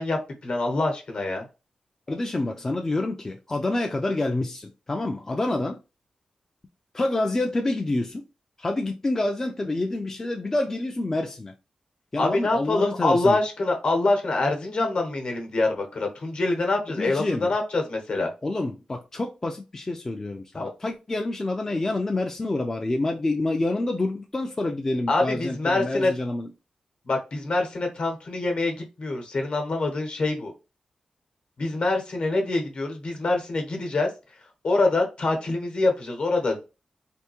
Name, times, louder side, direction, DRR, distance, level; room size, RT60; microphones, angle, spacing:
voice 1, 0.0-1.5 12.2-18.3 20.5-20.7 25.1-26.1 27.0-30.5 31.6-34.1 34.6-36.6, left 2 dB, 55° left, 1.0 m, -25 dB
voice 2, 2.1-5.8 6.9-8.2 8.6-11.5 12.1-13.4 17.0-17.5 18.4-26.5, left 2 dB, 25° left, 0.3 m, -27 dB
3.4 x 2.6 x 2.9 m
wide cardioid pair, 150°, 2 cm